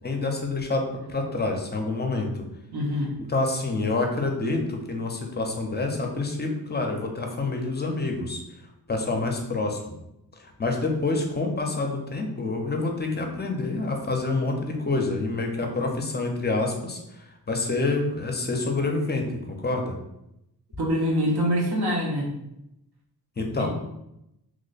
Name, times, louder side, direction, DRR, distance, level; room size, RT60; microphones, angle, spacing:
voice 1, 0.0-2.3 3.3-8.4 8.9-9.8 10.4-20.0 23.4-23.7, left 3 dB, 25° left, 3 dB, 0.5 m, -27 dB
voice 2, 2.7-3.1 20.8-22.3 23.5-23.7, equal, 80° right, -2 dB, 0.9 m, -25 dB
3.0 x 2.1 x 3.9 m, 0.84 s
wide cardioid pair, 145°, 38 cm